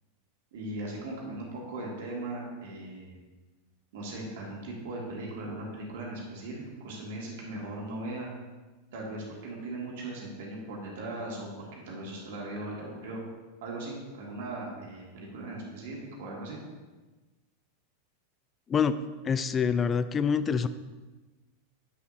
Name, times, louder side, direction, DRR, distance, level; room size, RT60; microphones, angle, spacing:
voice 1, 0.5-3.2 3.9-8.3 8.9-13.2 13.6-16.6, right 2 dB, 70° right, -2 dB, 2.1 m, -38 dB
voice 2, 19.2-20.7, left 6 dB, 25° left, 13 dB, 0.3 m, -26 dB
7.9 x 6.6 x 2.7 m, 1.2 s
hypercardioid pair, 100°, 0 cm